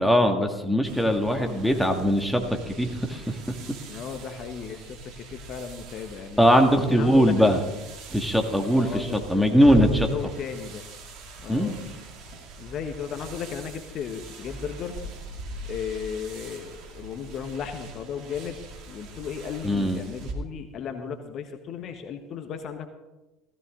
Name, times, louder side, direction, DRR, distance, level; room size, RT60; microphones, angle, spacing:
voice 1, 0.0-3.4 6.4-7.6 8.1-10.1 11.5-11.8 19.6-20.0, equal, ahead, 3 dB, 2.1 m, -21 dB
sound 1, 0.8-20.3, right 1 dB, 55° right, 2.4 m, -41 dB
voice 2, 1.2-2.1 3.9-6.5 6.9-7.6 8.7-10.8 11.4-11.8 12.6-15.0 15.7-18.6 18.9-22.9, left 7 dB, 45° left, 7 dB, 1.4 m, -35 dB
16.5 x 14.5 x 3.9 m, 1.0 s
hypercardioid pair, 70°, 0 cm